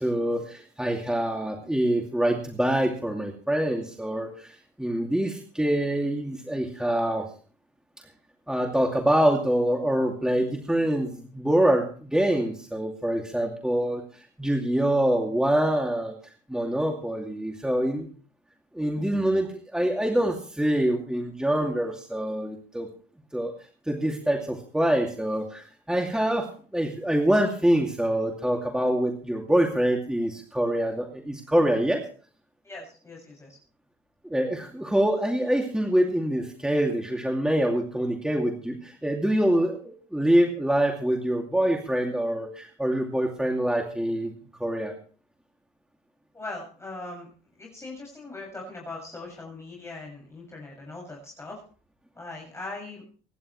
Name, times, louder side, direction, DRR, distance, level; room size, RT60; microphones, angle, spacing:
voice 1, 0.0-7.3 8.5-14.0 14.4-16.1 16.5-18.1 18.7-22.9 23.3-23.5 23.9-32.0 34.3-44.3 44.6-45.0, right 1 dB, 5° right, 1 dB, 2.5 m, -25 dB
voice 2, 32.6-33.6 46.3-47.3 47.6-51.6 52.1-53.0, left 2 dB, 15° left, -2 dB, 6.5 m, -40 dB
25.0 x 11.0 x 3.2 m, 0.42 s
cardioid pair, 110°, 17 cm